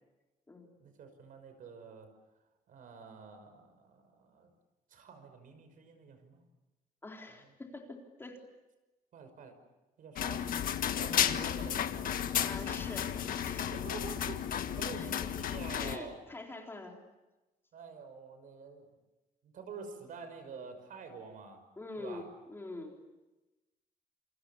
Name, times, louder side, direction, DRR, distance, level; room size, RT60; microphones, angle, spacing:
voice 1, 0.8-2.1 2.7-4.5 4.9-6.4 7.4-7.5 9.1-9.5 10.0-10.4 10.9-12.2 13.7-16.2 17.7-18.9 19.4-21.6 22.0-22.2, right 5 dB, 60° right, 8 dB, 5.8 m, -48 dB
voice 2, 7.0-8.4 12.4-13.7 15.0-15.3 15.7-17.0 21.8-23.0, left 2 dB, 15° left, 1 dB, 3.8 m, -45 dB
sound 1, 10.2-16.0, left 9 dB, 65° left, 1.6 m, -33 dB
29.0 x 28.0 x 7.2 m, 1.1 s
cardioid pair, 170°, 16 cm